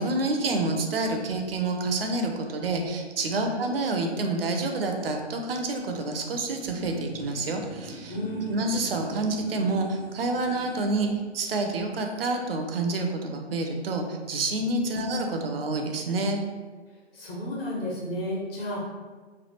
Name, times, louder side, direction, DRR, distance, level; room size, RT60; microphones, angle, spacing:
voice 1, 0.0-8.2 8.5-16.4, right 2 dB, 60° right, 3 dB, 0.5 m, -28 dB
sound 1, 6.2-11.1, equal, 15° left, 0.5 m, -43 dB
voice 2, 8.1-8.6 14.8-15.0 17.1-18.8, equal, 60° left, -5 dB, 1.3 m, -32 dB
3.2 x 2.3 x 2.9 m, 1.4 s
figure-of-eight pair, 130°, 33 cm